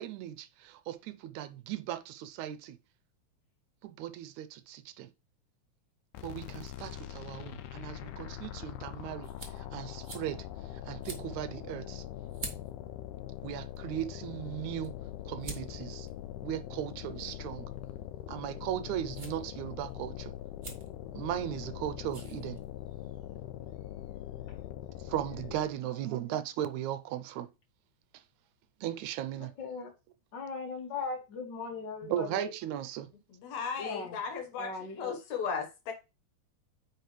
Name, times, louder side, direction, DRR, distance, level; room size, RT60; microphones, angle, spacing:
voice 1, 0.0-2.8 3.8-5.1 6.2-10.5 10.7-12.0 13.4-15.0 15.3-16.1 16.4-17.7 18.3-20.3 21.1-22.6 25.0-27.5 28.1-28.2 28.8-29.5 32.1-33.1, right 12 dB, 80° right, 1.9 m, -37 dB
sound 1, 6.1-25.8, left 12 dB, 85° left, 2.2 m, -42 dB
sound 2, 8.3-23.1, right 3 dB, 65° right, 0.4 m, -51 dB
voice 2, 25.8-26.4 29.4-29.9 30.3-32.5 33.8-34.2 34.6-35.1, left 4 dB, 40° left, 2.1 m, -39 dB
voice 3, 33.4-35.9, left 6 dB, 70° left, 2.6 m, -36 dB
9.0 x 4.9 x 3.3 m
omnidirectional pair, 3.5 m